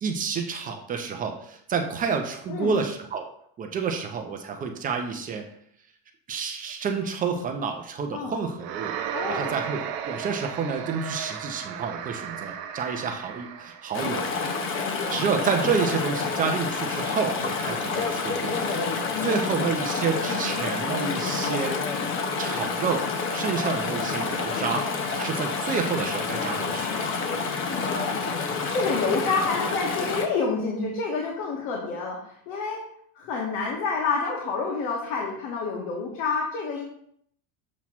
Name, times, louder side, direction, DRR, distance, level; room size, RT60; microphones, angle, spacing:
voice 1, 0.0-3.3 3.6-5.4 6.3-8.9 9.2-14.3 15.1-18.6 19.2-21.7 22.4-24.8 25.1-26.9, right 5 dB, 20° right, 4 dB, 0.4 m, -29 dB
voice 2, 2.5-2.8 8.1-8.3 9.1-9.6 14.7-15.1 19.1-19.6 24.5-24.7 27.3-28.1 28.7-32.8 33.1-36.8, left 4 dB, 65° left, -1 dB, 1.5 m, -29 dB
sound 1, 8.6-14.0, right 8 dB, 55° right, 0.8 m, -34 dB
Chatter / Stream, 13.9-30.3, left 4 dB, 30° left, 0.6 m, -28 dB
7.2 x 2.9 x 5.9 m, 0.66 s
cardioid pair, 165°, 44 cm